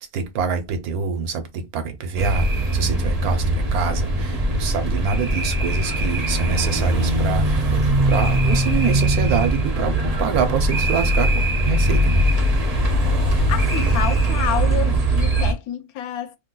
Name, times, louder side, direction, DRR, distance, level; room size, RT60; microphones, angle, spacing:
voice 1, 0.1-12.2, right 6 dB, 80° right, 1.2 m, -26 dB
sound 1, 2.2-15.5, right 1 dB, 40° right, 0.6 m, -20 dB
voice 2, 13.2-16.4, left 10 dB, 80° left, 1.0 m, -28 dB
2.8 x 2.3 x 3.7 m
omnidirectional pair, 1.6 m